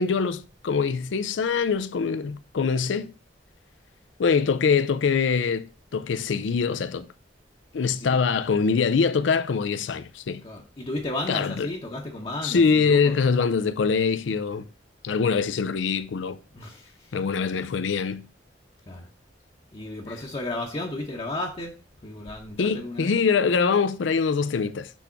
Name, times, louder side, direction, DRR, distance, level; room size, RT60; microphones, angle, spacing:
voice 1, 0.0-3.1 4.2-5.7 5.9-7.1 7.7-10.4 11.3-11.7 12.4-14.6 15.0-16.4 17.1-18.2 22.6-24.9, left 5 dB, 90° left, 0.5 m, -23 dB
voice 2, 10.4-13.1 16.5-17.2 18.9-19.1 19.7-21.7 22.0-23.1, left 1 dB, 30° left, 0.9 m, -33 dB
6.1 x 3.5 x 5.7 m
head